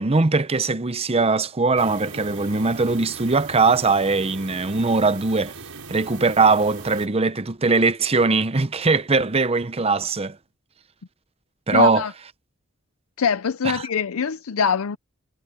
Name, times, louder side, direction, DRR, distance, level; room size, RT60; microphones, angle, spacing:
voice 1, 0.0-5.5 5.9-10.4 11.7-12.0 13.6-13.8, right 3 dB, 25° right, 0.8 m, -20 dB
sound 1, 1.8-7.1, right 4 dB, 75° right, 6.0 m, -39 dB
voice 2, 11.7-12.1 13.2-15.0, left 6 dB, 70° left, 0.6 m, -23 dB
head